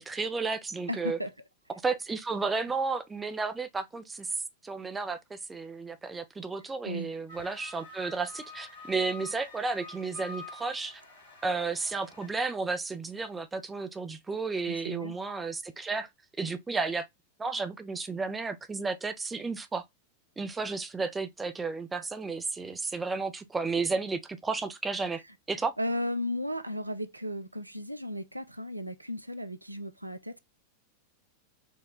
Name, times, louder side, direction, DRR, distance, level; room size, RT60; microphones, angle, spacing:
voice 1, 0.0-1.2 1.8-4.3 4.6-11.0 11.4-16.1 16.4-17.1 17.4-19.8 20.4-25.2 25.5-25.7, right 4 dB, 15° right, 0.5 m, -32 dB
voice 2, 0.9-1.3 6.9-7.1 14.7-15.1 25.8-30.4, left 1 dB, 85° right, 0.4 m, -35 dB
sound 1, 7.3-12.4, left 3 dB, 60° left, 2.2 m, -47 dB
4.6 x 2.1 x 3.8 m
figure-of-eight pair, 90°, 0 cm